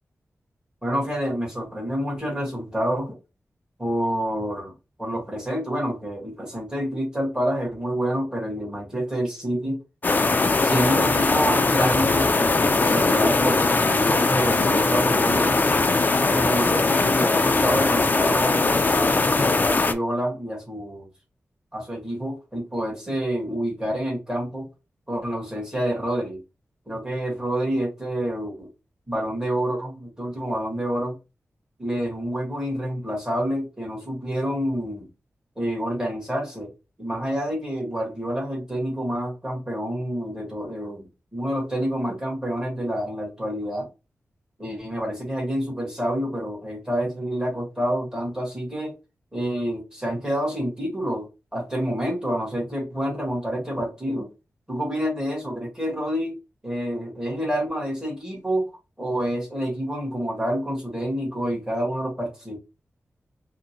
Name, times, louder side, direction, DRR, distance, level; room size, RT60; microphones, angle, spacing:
voice 1, 0.8-3.2 3.8-4.7 5.0-9.8 10.5-15.5 16.3-21.1 21.7-24.7 25.1-26.4 26.9-28.7 29.1-31.2 31.8-35.1 35.6-36.7 37.0-43.9 44.6-49.0 49.3-54.3 54.7-56.3 56.6-58.7 59.0-62.6, equal, 15° right, 1.7 m, -28 dB
sound 1, 10.0-19.9, left 3 dB, 35° left, 0.4 m, -20 dB
4.9 x 2.2 x 3.0 m
wide cardioid pair, 115°, 5 cm